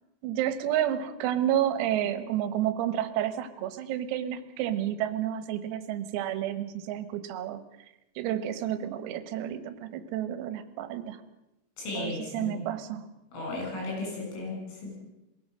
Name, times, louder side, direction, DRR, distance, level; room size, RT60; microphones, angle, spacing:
voice 1, 0.2-7.6 8.2-11.2 12.0-13.1, right 11 dB, 90° right, 12 dB, 4.0 m, -30 dB
voice 2, 11.8-12.6 13.3-14.9, left 2 dB, 70° left, 0 dB, 10.5 m, -35 dB
22.0 x 16.5 x 7.7 m, 0.93 s
omnidirectional pair, 6.0 m